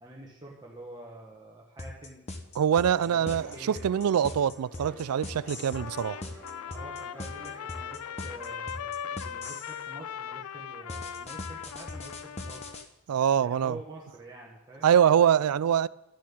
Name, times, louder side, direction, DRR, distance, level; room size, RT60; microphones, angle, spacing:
voice 1, 0.0-2.2 3.0-3.8 6.6-12.7 13.4-14.9, right 2 dB, 20° right, 1.3 m, -47 dB
sound 1, 1.8-9.8 10.9-12.8, left 2 dB, 30° left, 1.1 m, -40 dB
voice 2, 2.6-6.2 13.1-13.8 14.8-15.9, right 8 dB, 80° right, 0.3 m, -24 dB
sound 2, 3.0-10.5, equal, 10° left, 3.9 m, -51 dB
Trumpet, 5.7-12.9, left 8 dB, 75° left, 0.4 m, -39 dB
13.0 x 7.5 x 8.5 m
head